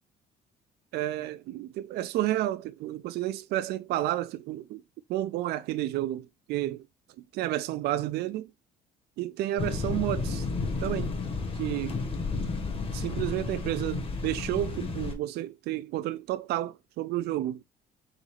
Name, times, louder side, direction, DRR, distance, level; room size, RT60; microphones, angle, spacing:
voice 1, 0.9-4.8 5.1-6.9 7.3-8.5 9.2-10.5 10.8-11.2 11.5-12.0 12.9-17.6, right 14 dB, 75° right, 0.4 m, -31 dB
sound 1, 9.6-15.2, left 3 dB, 35° left, 1.3 m, -32 dB
3.9 x 3.9 x 3.2 m
cardioid pair, 110°, 17 cm